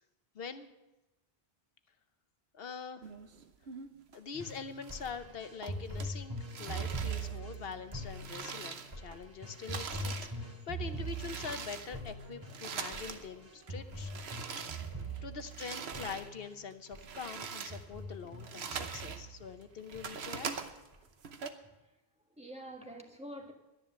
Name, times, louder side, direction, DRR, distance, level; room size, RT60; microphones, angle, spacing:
voice 1, 0.3-0.7 2.5-3.1 4.1-14.1 15.2-20.5, left 6 dB, 65° left, 9 dB, 1.0 m, -44 dB
sound 1, 3.0-4.2 4.5-5.3 5.6-9.2 9.5-13.3 13.6-16.3 16.7-19.2 19.6-21.5, right 6 dB, 85° right, 1.2 m, -43 dB
sound 2, 4.3-16.6 16.9-17.1 17.4-19.5 19.9-20.5 20.9-21.0, right 2 dB, 25° right, 2.4 m, -42 dB
voice 2, 14.8-15.2 21.6-21.7 22.4-23.5, right 1 dB, 5° right, 2 dB, 1.6 m, -48 dB
12.5 x 10.5 x 7.0 m, 0.99 s
omnidirectional pair, 1.0 m